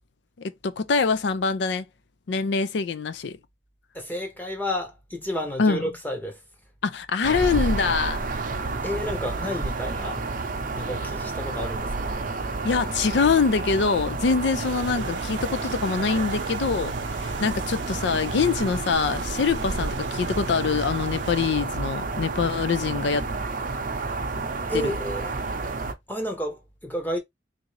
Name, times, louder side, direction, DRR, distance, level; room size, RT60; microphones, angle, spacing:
voice 1, 0.4-1.9 2.3-3.4 5.6-5.8 6.8-8.2 12.6-23.3 24.7-24.9, left 5 dB, 65° left, 0.4 m, -24 dB
voice 2, 3.9-6.4 8.8-10.2 10.7-12.1 24.7-25.3 26.1-27.2, equal, 10° left, 0.9 m, -31 dB
sound 1, 7.2-25.9, right 3 dB, 50° right, 0.6 m, -30 dB
sound 2, 14.6-21.5, right 4 dB, 80° right, 0.7 m, -38 dB
3.6 x 2.7 x 3.1 m
head